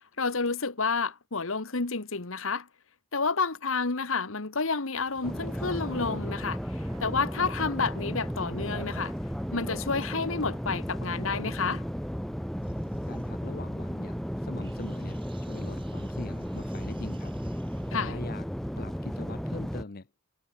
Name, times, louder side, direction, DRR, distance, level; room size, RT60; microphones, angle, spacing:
voice 1, 0.2-2.7 3.1-6.6 7.0-9.1 9.5-11.8 17.9-18.2, left 4 dB, 70° left, 1.5 m, -30 dB
sound 1, 4.7-16.6, right 3 dB, 80° right, 4.9 m, -58 dB
sound 2, 5.2-19.8, equal, ahead, 1.8 m, -34 dB
sound 3, 12.6-14.3 14.6-18.1, right 2 dB, 25° right, 2.4 m, -54 dB
voice 2, 13.1-17.3 17.9-18.5 18.8-20.1, left 3 dB, 45° left, 0.9 m, -42 dB
head